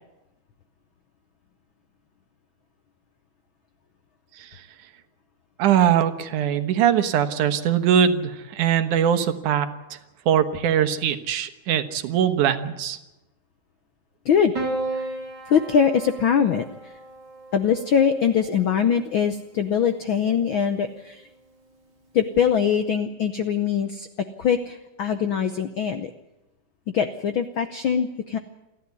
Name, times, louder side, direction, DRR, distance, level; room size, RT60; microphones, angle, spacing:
voice 1, 5.6-10.0 10.3-13.0, right 9 dB, 90° right, 9 dB, 2.7 m, -21 dB
Piano, 14.5-19.0 20.2-20.9, right 2 dB, 35° right, 4.3 m, -34 dB
voice 2, 15.5-16.7 17.5-21.3 22.1-24.1 24.4-26.1 26.9-28.4, left 7 dB, 80° left, 9 dB, 1.1 m, -22 dB
29.0 x 11.0 x 9.5 m, 1.0 s
omnidirectional pair, 3.4 m